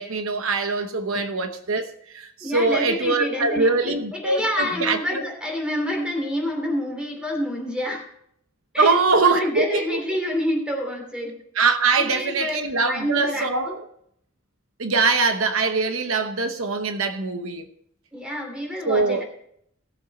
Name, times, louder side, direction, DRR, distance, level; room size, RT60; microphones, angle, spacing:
voice 1, 0.0-5.2 8.8-10.2 11.5-13.8 14.8-17.7 18.9-19.2, right 4 dB, 75° right, 1.0 m, -23 dB
voice 2, 2.4-8.1 8.7-9.0 9.2-11.4 12.0-12.6 12.9-13.8 18.1-19.2, left 1 dB, 5° right, 2.9 m, -28 dB
17.0 x 7.4 x 4.2 m
head